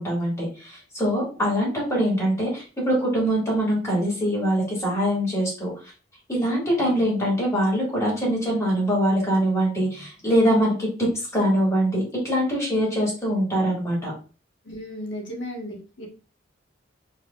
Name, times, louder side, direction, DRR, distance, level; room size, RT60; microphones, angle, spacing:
voice 1, 0.0-5.7 6.3-10.9 11.3-14.1, equal, 15° left, -5 dB, 2.0 m, -23 dB
voice 2, 14.6-16.1, equal, 70° left, 0 dB, 1.2 m, -35 dB
4.6 x 2.8 x 2.3 m, 0.35 s
head